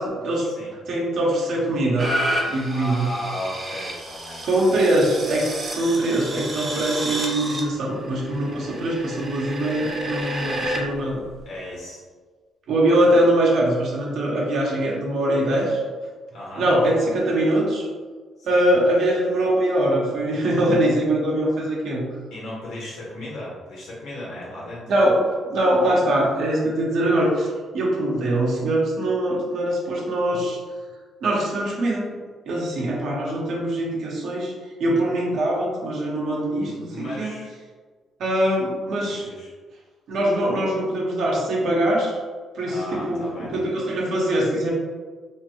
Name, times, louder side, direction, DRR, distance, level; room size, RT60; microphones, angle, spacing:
voice 1, 0.0-0.5 0.9-2.2 2.5-3.1 4.4-11.2 12.7-15.8 16.6-17.9 18.4-22.1 24.9-30.6 31.2-32.1 32.5-34.5 34.8-37.3 38.2-39.3 40.1-42.2 42.5-44.7, right 1 dB, 70° right, -3 dB, 0.9 m, -22 dB
sound 1, 2.0-10.8 11.4-11.5, right 1 dB, 35° right, 0.7 m, -30 dB
voice 2, 2.7-4.5 10.4-10.8 11.4-12.0 16.3-16.7 18.4-18.6 22.3-24.8 36.6-37.5 39.1-39.5 42.6-43.5, left 1 dB, 80° left, -6 dB, 1.4 m, -35 dB
3.4 x 2.3 x 2.9 m, 1.5 s
cardioid pair, 90°, 0 cm